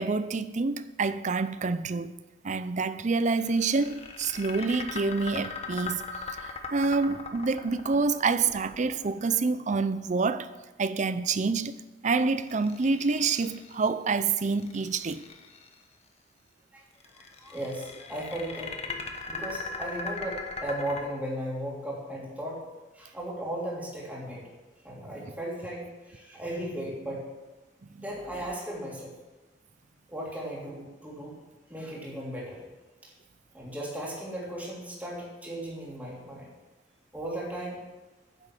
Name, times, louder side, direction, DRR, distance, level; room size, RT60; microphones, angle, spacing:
voice 1, 0.0-2.1 2.4-6.0 6.4-10.5 10.8-11.7 12.0-15.2 25.1-25.2 27.9-28.1, right 4 dB, 40° right, 0.5 m, -27 dB
sound 1, 3.3-9.5 12.3-13.9 14.4-15.7 17.0-21.0, left 4 dB, 35° left, 1.2 m, -39 dB
voice 2, 17.2-22.6 22.9-24.4 24.8-27.3 28.0-29.1 30.1-31.4 31.7-32.6 33.0-33.1 33.5-36.5 37.1-37.8, right 1 dB, 10° right, 3.1 m, -36 dB
10.0 x 7.5 x 7.5 m
head